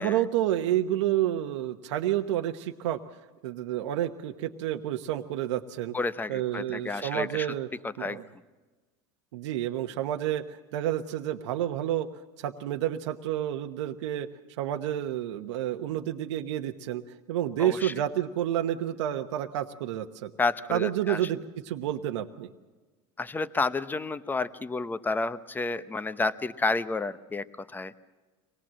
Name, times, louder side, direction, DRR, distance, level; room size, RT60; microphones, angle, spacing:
voice 1, 0.0-3.0 3.4-5.9 6.3-7.7 8.0-8.2 9.3-12.1 12.4-14.3 14.6-17.0 17.3-20.3 20.7-21.4 21.6-22.5, right 12 dB, 90° right, 6 dB, 1.1 m, -29 dB
voice 2, 5.9-7.5 8.0-8.2 17.6-17.9 20.4-21.2 23.2-27.9, left 3 dB, 15° left, 13 dB, 0.9 m, -30 dB
24.5 x 19.0 x 7.6 m, 1.3 s
supercardioid pair, 125°, 15 cm